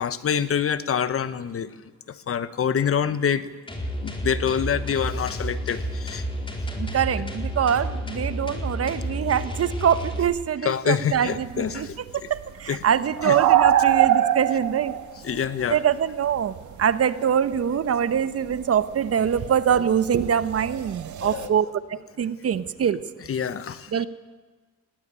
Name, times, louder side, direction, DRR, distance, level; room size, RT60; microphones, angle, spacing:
voice 1, 0.0-1.7 2.3-3.5 4.0-6.2 10.6-12.0 12.7-12.8 13.2-13.4 15.2-15.8 21.2-21.7 23.3-24.1, left 8 dB, 50° left, 14 dB, 1.2 m, -26 dB
sound 1, 3.7-10.2, equal, 15° left, 4.2 m, -31 dB
voice 2, 6.8-11.9 12.1-14.9 15.7-23.0 23.9-24.1, right 8 dB, 50° right, 13 dB, 1.1 m, -24 dB
sound 2, 11.1-17.3 17.5-21.5, right 11 dB, 75° right, 1.7 m, -25 dB
19.5 x 18.5 x 9.0 m, 1.3 s
cardioid pair, 90°, 30 cm